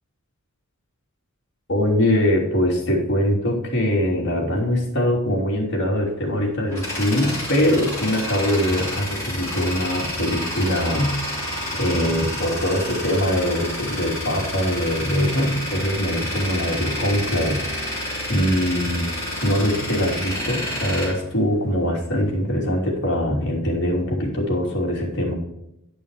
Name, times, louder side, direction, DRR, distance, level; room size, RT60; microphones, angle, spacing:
voice 1, 1.7-19.1 19.4-25.3, equal, 55° left, -2 dB, 2.9 m, -22 dB
Tools, 6.2-22.1, left 1 dB, 15° left, 3.5 m, -29 dB
10.0 x 5.4 x 4.8 m, 0.84 s
head